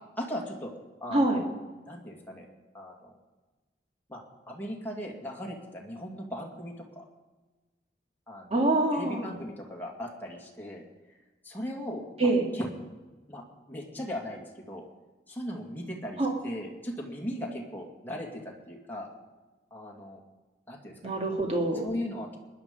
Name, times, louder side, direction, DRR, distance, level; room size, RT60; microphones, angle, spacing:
voice 1, 0.2-0.7 1.0-1.5 1.9-2.5 2.7-3.1 4.1-4.2 4.5-7.0 8.3-8.5 8.9-10.8 11.4-12.7 13.3-14.9 15.3-19.1 19.7-20.2 20.7-21.2 21.8-22.4, equal, 10° left, -1 dB, 2.4 m, -38 dB
voice 2, 1.1-1.4 8.5-9.3 12.2-12.4 16.2-16.3 21.0-21.9, right 2 dB, 35° right, 0 dB, 2.4 m, -25 dB
20.0 x 10.5 x 5.4 m, 1.2 s
head